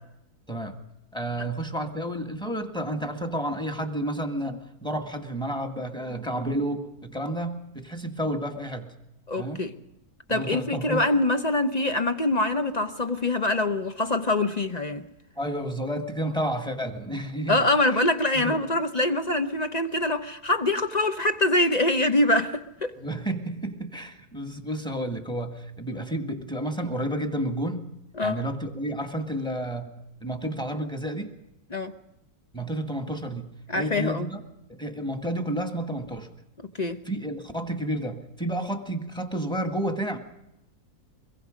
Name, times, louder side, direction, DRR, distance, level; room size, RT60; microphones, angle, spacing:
voice 1, 1.1-8.9 9.4-9.7 10.3-11.1 15.4-17.6 18.4-18.6 23.0-27.9 28.2-29.9 30.2-31.3 32.5-33.5 33.7-34.4 34.8-36.3 37.1-40.2, right 1 dB, 5° left, 1.7 m, -31 dB
voice 2, 9.3-9.7 10.3-15.1 17.5-22.9 28.2-28.4 31.7-31.9 33.7-34.3 36.8-37.0, left 2 dB, 30° left, 0.9 m, -24 dB
24.5 x 22.5 x 5.2 m
omnidirectional pair, 1.6 m